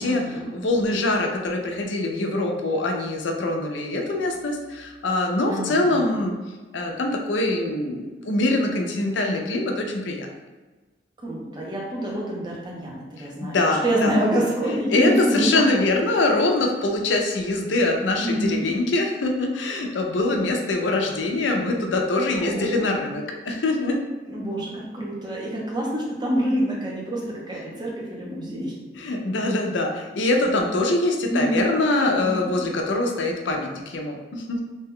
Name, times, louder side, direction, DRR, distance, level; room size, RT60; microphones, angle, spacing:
voice 1, 0.0-0.5 5.4-6.2 11.2-15.6 18.2-18.7 22.3-23.0 24.3-28.7 30.6-30.7 31.3-31.7 32.1-32.7, right 1 dB, 25° right, -3 dB, 0.6 m, -27 dB
voice 2, 0.5-6.4 6.7-10.3 13.2-14.1 14.9-24.0 28.9-34.6, left 2 dB, 90° left, 2 dB, 0.5 m, -24 dB
2.7 x 2.2 x 3.5 m, 1.2 s
head